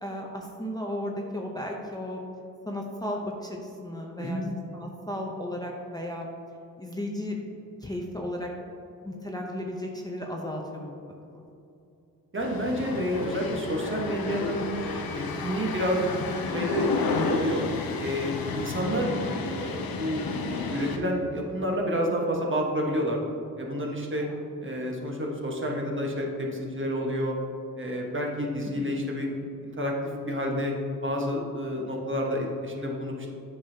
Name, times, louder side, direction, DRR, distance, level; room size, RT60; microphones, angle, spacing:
voice 1, 0.0-2.2 2.7-4.4 4.7-6.3 6.8-7.4 7.8-8.5 9.0-11.0 11.3-11.4 24.2-24.4 28.8-29.1, left 1 dB, 10° left, -1 dB, 0.7 m, -35 dB
voice 2, 12.3-16.1 16.5-17.6 18.0-19.1 19.4-20.2 20.7-23.2 23.6-24.3 24.6-27.4 27.8-29.3 29.6-29.9 30.3-30.7 31.0-33.3, equal, 35° right, -1 dB, 1.3 m, -29 dB
sound 1, 12.4-21.0, left 3 dB, 85° left, 0.7 m, -32 dB
8.6 x 5.4 x 2.8 m, 2.7 s
cardioid pair, 60°, 35 cm